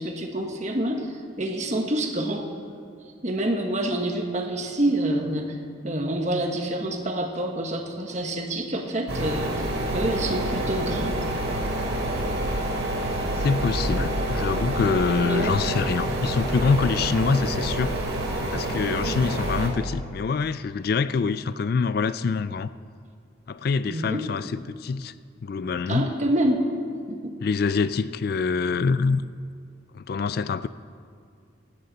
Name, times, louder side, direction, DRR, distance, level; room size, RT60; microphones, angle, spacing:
voice 1, 0.0-2.4 3.2-5.6 5.8-9.7 9.9-11.1 15.2-15.5 18.9-19.1 23.8-24.3 25.9-26.6 27.1-27.3, right 1 dB, 35° right, 3 dB, 1.3 m, -27 dB
sound 1, 9.1-19.7, right 1 dB, 90° right, 2.8 m, -27 dB
voice 2, 13.4-17.9 18.5-22.7 23.5-25.1 25.4-26.1 27.4-29.2 29.9-30.7, left 5 dB, 50° left, 14 dB, 0.3 m, -25 dB
17.5 x 15.0 x 4.1 m, 2.3 s
head